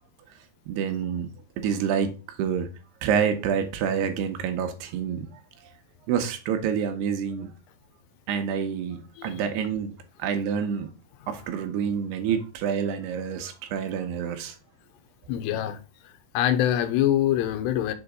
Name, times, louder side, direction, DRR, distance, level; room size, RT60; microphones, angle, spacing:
voice 1, 0.7-1.3 1.6-2.1 2.4-2.7 3.0-5.3 6.1-7.5 8.3-9.9 10.2-10.9 11.3-14.5, right 7 dB, 80° right, 3.0 m, -27 dB
voice 2, 15.3-15.8 16.3-17.9, left 11 dB, 90° left, 2.9 m, -24 dB
6.9 x 4.0 x 3.5 m
omnidirectional pair, 4.7 m